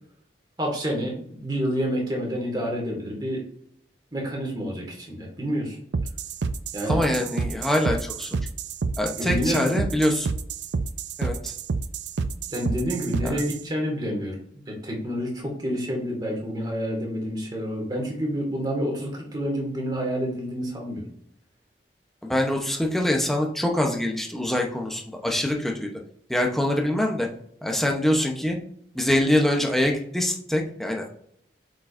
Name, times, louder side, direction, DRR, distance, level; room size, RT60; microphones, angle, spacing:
voice 1, 0.6-3.5 4.1-5.8 6.7-7.3 9.2-9.8 12.5-14.4 14.7-21.1, equal, 25° right, -1 dB, 1.9 m, -28 dB
sound 1, 5.9-13.6, right 4 dB, 75° right, 0.4 m, -29 dB
voice 2, 6.9-8.4 9.0-10.3 11.2-11.5 13.2-13.4 22.2-25.9 26.3-27.3 27.6-28.6 28.9-31.1, left 1 dB, ahead, 1 dB, 0.8 m, -24 dB
7.8 x 4.8 x 2.6 m, 0.69 s
head